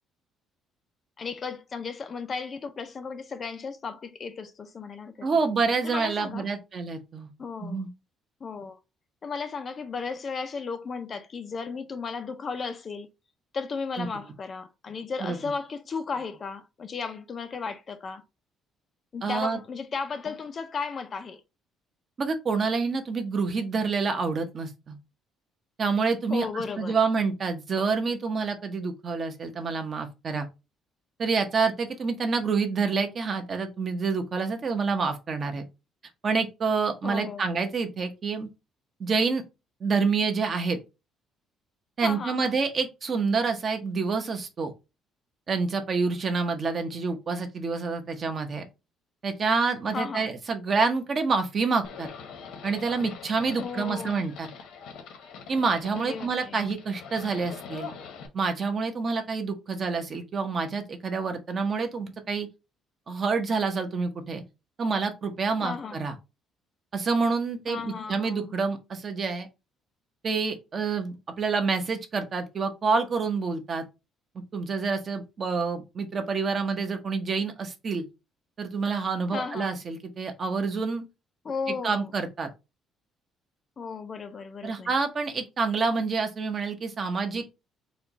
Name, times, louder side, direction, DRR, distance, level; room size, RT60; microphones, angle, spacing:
voice 1, 1.2-5.3 5.8-6.5 7.4-7.9 8.4-8.8 9.2-13.1 13.5-18.2 19.1-21.4 26.3-27.0 37.0-37.5 42.0-42.5 49.9-50.3 53.6-54.2 55.9-56.6 65.6-66.0 67.7-68.5 79.3-79.8 81.4-82.1 83.8-84.9, left 5 dB, 30° left, 0.5 m, -35 dB
voice 2, 5.2-7.3 7.6-7.9 14.0-14.1 15.2-15.4 19.2-19.6 22.2-25.0 25.8-30.5 31.2-35.6 36.2-38.5 39.0-39.4 39.8-40.8 42.0-44.7 45.5-48.6 49.2-52.1 52.6-54.5 55.5-57.9 58.3-62.5 63.1-64.4 64.8-66.1 66.9-69.5 70.2-73.8 74.3-78.0 78.6-81.0 81.8-82.5 84.6-87.6, right 4 dB, 35° right, 0.8 m, -27 dB
Livestock farm animals working animals, 51.8-58.3, left 6 dB, 80° left, 1.1 m, -43 dB
4.4 x 2.3 x 4.0 m
cardioid pair, 155°, 0 cm